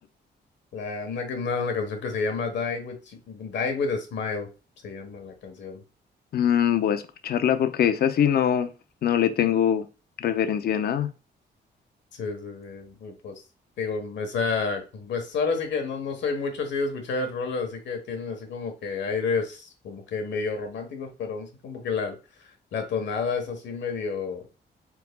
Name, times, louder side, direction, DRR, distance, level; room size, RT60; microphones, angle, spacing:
voice 1, 0.7-4.5 4.8-5.8 12.1-13.4 13.8-24.5, left 4 dB, 85° left, 1.3 m, -30 dB
voice 2, 6.3-8.7 9.0-9.9 10.2-11.1, left 9 dB, 60° left, 0.5 m, -23 dB
4.6 x 4.1 x 2.3 m
wide cardioid pair, 140°, 18 cm